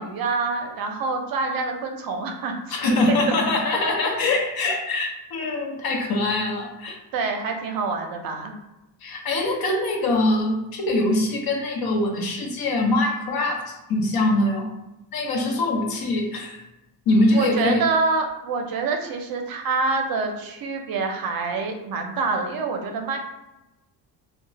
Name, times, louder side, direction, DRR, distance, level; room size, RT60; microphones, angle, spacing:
voice 1, 0.0-2.6 2.8-3.2 7.1-8.5 17.3-23.2, right 4 dB, 55° right, 4 dB, 0.6 m, -26 dB
voice 2, 2.7-7.0 9.0-14.7 15.1-16.6 17.1-17.8, left 2 dB, 55° left, 1 dB, 0.7 m, -23 dB
2.3 x 2.1 x 3.9 m, 0.96 s
cardioid pair, 140°, 42 cm